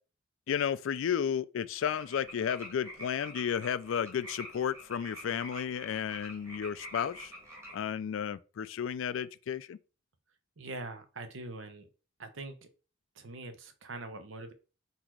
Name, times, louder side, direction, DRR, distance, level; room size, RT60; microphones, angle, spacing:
voice 1, 0.5-7.3 7.7-9.8, left 8 dB, 75° left, 0.3 m, -33 dB
sound 1, 1.8-7.8, equal, 15° right, 1.2 m, -47 dB
voice 2, 10.6-11.9 12.2-12.7 13.2-14.5, right 2 dB, 75° right, 0.7 m, -43 dB
4.0 x 2.9 x 4.5 m
head